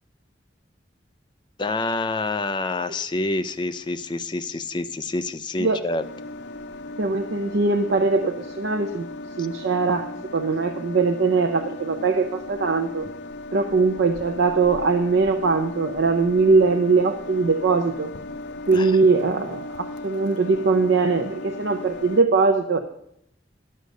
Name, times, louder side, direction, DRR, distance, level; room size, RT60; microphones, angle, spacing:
voice 1, 1.6-6.0 18.7-18.9, left 2 dB, 25° left, 11 dB, 0.4 m, -27 dB
sound 1, 6.0-22.2, left 2 dB, 75° left, 0.6 m, -37 dB
voice 2, 7.0-9.1 9.4-13.1 13.5-18.1 18.7-22.8, right 4 dB, 85° right, 6 dB, 0.6 m, -21 dB
10.5 x 6.5 x 6.5 m, 0.77 s
head